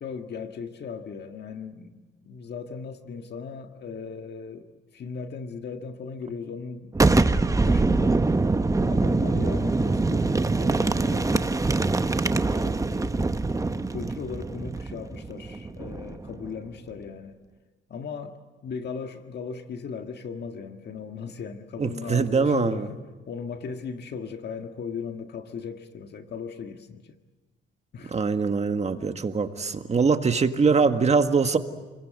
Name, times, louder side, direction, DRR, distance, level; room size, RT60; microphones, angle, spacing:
voice 1, 0.0-4.7 4.9-8.2 8.9-11.7 12.6-13.3 13.9-17.4 17.9-18.4 18.6-23.0 23.3-27.1 27.9-28.1, left 5 dB, 55° left, 1.7 m, -37 dB
Boom, 6.9-16.5, right 3 dB, 15° right, 1.0 m, -24 dB
voice 2, 21.8-22.9 28.1-31.6, right 5 dB, 35° right, 1.8 m, -23 dB
29.5 x 22.0 x 7.8 m
cardioid pair, 90°, 20 cm